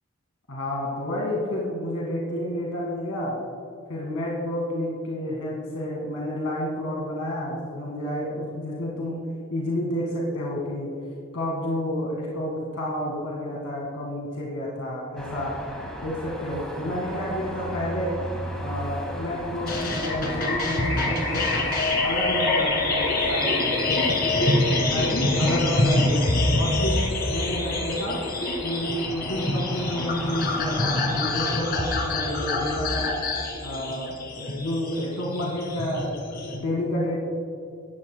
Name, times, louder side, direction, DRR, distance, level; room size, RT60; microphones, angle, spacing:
voice 1, 0.5-3.4 3.9-9.2 9.5-10.9 11.3-15.6 16.0-18.2 18.6-21.5 22.0-24.1 24.9-28.2 28.6-33.2 33.6-37.2, left 1 dB, 90° left, -4 dB, 2.0 m, -30 dB
Car passing by / Traffic noise roadway noise / Engine, 15.2-32.3, equal, 5° left, 2.0 m, -37 dB
sound 1, 19.7-36.6, left 2 dB, 45° left, 2.0 m, -25 dB
17.5 x 13.0 x 2.3 m, 2.5 s
head